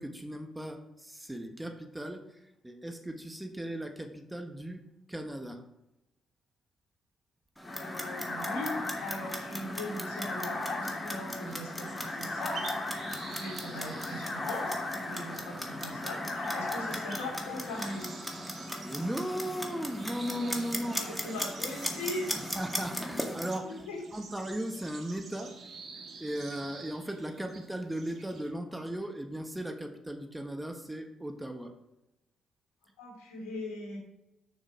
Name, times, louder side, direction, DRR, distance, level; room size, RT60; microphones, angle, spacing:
voice 1, 0.0-4.8 5.1-5.6 18.8-21.0 22.5-23.9 24.1-25.6 26.2-31.7, right 1 dB, 10° right, 6 dB, 1.2 m, -37 dB
voice 2, 7.6-12.6 13.1-18.1 20.8-22.4 23.6-24.0 33.0-34.0, left 1 dB, 80° left, -1 dB, 2.8 m, -40 dB
sound 1, 7.6-18.0, left 2 dB, 45° left, 1.9 m, -38 dB
Clock, 7.6-23.6, equal, 5° left, 1.9 m, -39 dB
sound 2, 11.8-28.5, right 4 dB, 60° right, 1.6 m, -49 dB
6.7 x 6.4 x 4.9 m, 0.90 s
hypercardioid pair, 45°, 0 cm